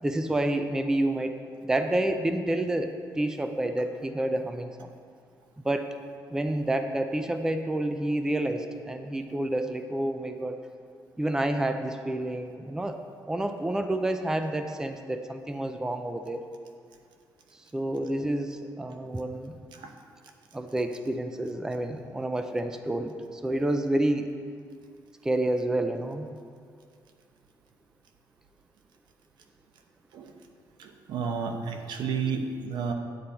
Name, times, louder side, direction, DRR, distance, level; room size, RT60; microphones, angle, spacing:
voice 1, 0.0-4.9 5.6-5.9 6.3-10.6 11.2-16.4 17.5-19.5 20.5-24.3 25.2-26.3, right 1 dB, 10° right, 7 dB, 0.4 m, -29 dB
voice 2, 30.8-32.9, right 5 dB, 85° right, 4 dB, 1.0 m, -31 dB
9.6 x 8.4 x 4.4 m, 2.1 s
cardioid pair, 155°, 8 cm